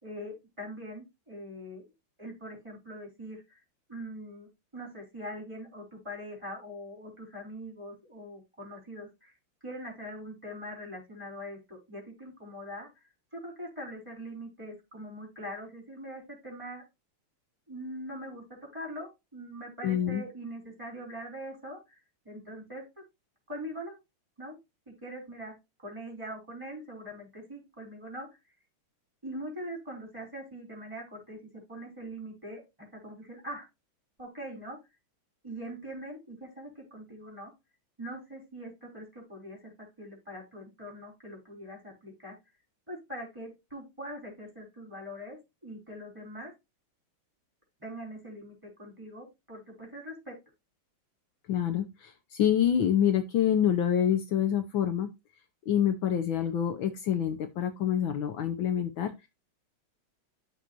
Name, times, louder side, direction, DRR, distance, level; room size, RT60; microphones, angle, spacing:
voice 1, 0.0-1.9 2.2-3.6 3.9-9.3 9.6-12.9 13.3-16.8 17.7-22.0 22.2-23.0 23.5-24.0 24.4-24.6 24.9-28.3 29.2-31.4 31.7-32.6 33.0-33.7 34.2-34.8 35.4-37.5 38.0-39.7 40.0-42.3 42.9-46.5 47.8-50.4, equal, 15° right, -1 dB, 4.3 m, -42 dB
voice 2, 19.8-20.2 51.5-55.1 55.7-59.3, left 9 dB, 70° left, 7 dB, 1.6 m, -27 dB
13.0 x 4.7 x 2.5 m, 0.23 s
omnidirectional pair, 2.4 m